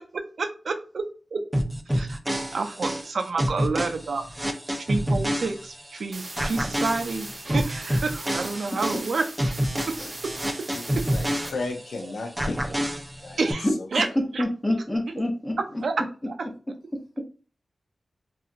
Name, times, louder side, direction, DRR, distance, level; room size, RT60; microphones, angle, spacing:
voice 1, 0.1-1.1 1.3-1.4 1.9-2.2 2.5-4.2 4.9-9.3 9.9-10.0 10.2-10.3 11.0-11.1 13.4-14.1 14.3-14.4 15.8-15.9 16.3-16.4, right 4 dB, 70° right, 0.4 m, -29 dB
sound 1, 1.5-6.0 6.4-12.0 12.4-13.5, equal, 5° right, 0.4 m, -28 dB
sound 2, 6.1-11.5, right 2 dB, 35° right, 0.9 m, -39 dB
voice 2, 10.7-12.8 13.2-13.4 13.8-14.1, left 3 dB, 90° left, 0.4 m, -34 dB
voice 3, 14.2-15.5 16.9-17.2, left 1 dB, 15° left, 0.7 m, -26 dB
2.8 x 2.3 x 2.5 m
wide cardioid pair, 130°, 0 cm